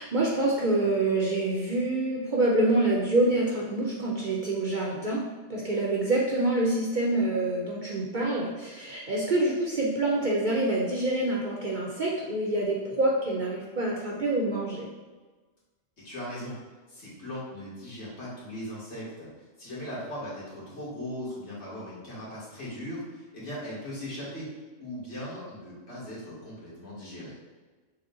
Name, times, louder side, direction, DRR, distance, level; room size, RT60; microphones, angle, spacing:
voice 1, 0.0-5.2 5.5-14.9, right 2 dB, 50° right, -3 dB, 0.7 m, -26 dB
voice 2, 16.0-16.5 16.9-19.3 19.6-23.0 23.3-24.5 24.8-27.3, equal, 65° left, -8 dB, 1.9 m, -38 dB
6.1 x 2.2 x 3.7 m, 1.3 s
omnidirectional pair, 1.3 m